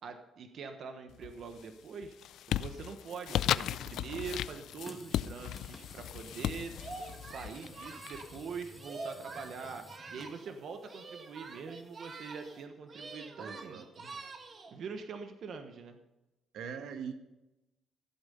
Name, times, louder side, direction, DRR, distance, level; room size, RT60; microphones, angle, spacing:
voice 1, 0.0-2.1 2.5-7.0 7.2-13.8 14.7-16.0, right 5 dB, 65° right, 6 dB, 1.1 m, -44 dB
sound 1, 1.1-1.6 2.0-8.6, left 11 dB, 80° left, 0.4 m, -36 dB
sound 2, 4.8-12.6, left 2 dB, 15° left, 1.6 m, -54 dB
Singing, 6.7-10.6 10.8-12.6 12.9-14.8, right 3 dB, 40° right, 1.6 m, -46 dB
voice 2, 13.4-14.2 16.5-17.1, right 7 dB, 80° right, 7 dB, 1.3 m, -42 dB
14.5 x 8.4 x 5.5 m, 0.96 s
cardioid pair, 90°, 0 cm